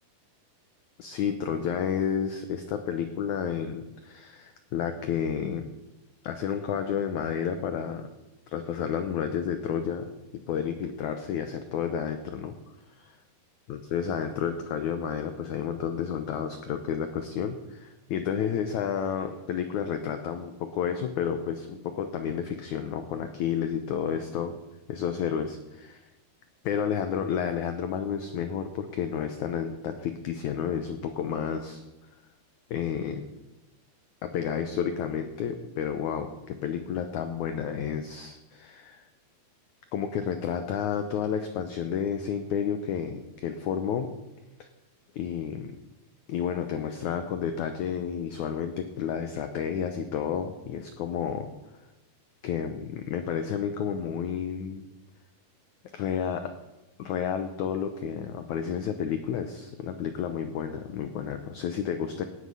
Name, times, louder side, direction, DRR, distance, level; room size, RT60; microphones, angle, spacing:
voice 1, 1.0-5.6 6.2-8.1 8.5-10.1 10.5-12.5 13.0-13.2 13.7-24.6 24.9-26.0 26.6-31.8 32.7-33.3 34.2-39.0 39.9-44.1 44.6-44.7 45.1-45.7 46.3-51.5 52.4-54.9 55.9-56.5 57.0-62.2, left 8 dB, 85° left, 8 dB, 1.7 m, -31 dB
17.5 x 9.5 x 5.5 m, 1.0 s
omnidirectional pair, 4.6 m